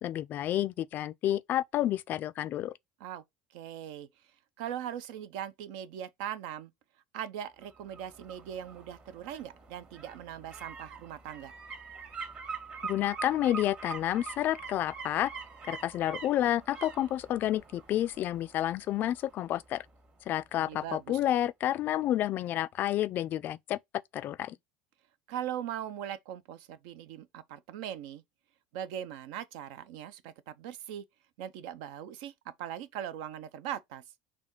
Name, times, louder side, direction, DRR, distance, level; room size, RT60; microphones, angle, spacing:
voice 1, 0.0-2.7 12.8-15.3 15.7-19.8 20.3-23.8 24.1-24.6, left 12 dB, 50° left, 0.3 m, -30 dB
voice 2, 3.5-4.1 4.6-6.7 7.1-11.5 20.6-21.2 25.3-28.2 28.7-31.0 31.4-34.0, right 10 dB, 70° right, 0.5 m, -40 dB
sound 1, 7.6-20.5 20.8-20.9, right 5 dB, 40° right, 1.7 m, -45 dB
4.2 x 2.8 x 4.5 m
hypercardioid pair, 85°, 4 cm